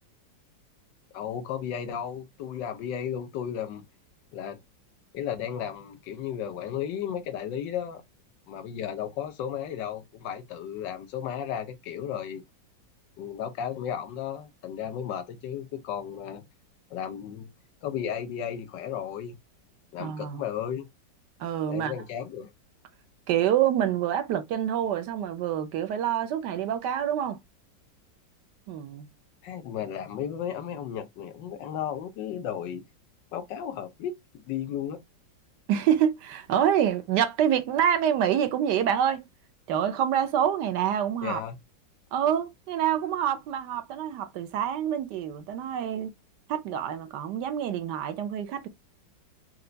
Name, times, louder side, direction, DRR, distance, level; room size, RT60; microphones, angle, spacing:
voice 1, 1.1-3.8 4.3-4.6 5.1-8.0 8.5-12.4 13.2-16.4 16.9-17.5 17.8-19.4 19.9-20.9 21.7-22.5 29.4-32.8 33.3-35.0 41.2-41.6, left 9 dB, 75° left, 1.4 m, -34 dB
voice 2, 20.0-20.4 21.4-22.0 23.3-27.4 28.7-29.1 35.7-39.2 39.7-41.4 42.1-46.1 46.5-48.7, right 9 dB, 70° right, 1.2 m, -26 dB
4.5 x 2.3 x 3.8 m
omnidirectional pair, 2.0 m